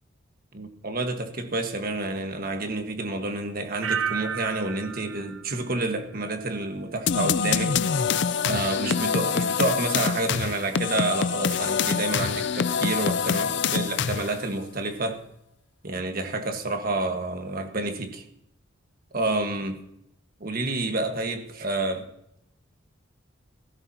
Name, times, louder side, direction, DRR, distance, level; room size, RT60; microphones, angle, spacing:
voice 1, 0.5-7.8 8.4-15.2 15.8-18.2 19.1-19.8 20.4-22.1, right 2 dB, 50° right, 1.5 m, -29 dB
sound 1, 3.8-6.7 7.0-7.5, right 7 dB, 80° right, 0.8 m, -34 dB
Mallet percussion, 6.3-8.7, right 6 dB, 20° right, 4.0 m, -52 dB
sound 2, 7.1-14.4, left 6 dB, 60° left, 0.5 m, -25 dB
17.5 x 15.0 x 2.9 m
head